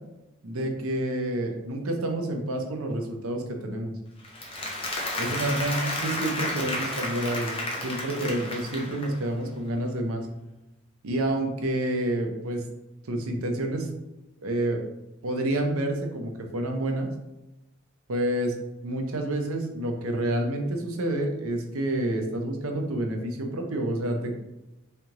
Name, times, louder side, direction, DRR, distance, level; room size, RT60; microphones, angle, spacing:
voice 1, 0.4-3.9 5.2-7.6 7.8-10.3 11.0-12.6 13.0-13.9 14.4-14.8 15.2-17.1 18.1-18.5 18.8-24.4, right 1 dB, 80° right, 3 dB, 0.7 m, -28 dB
Applause, 4.2-9.3, left 1 dB, 25° left, 0.7 m, -32 dB
3.6 x 3.3 x 2.9 m, 0.96 s
head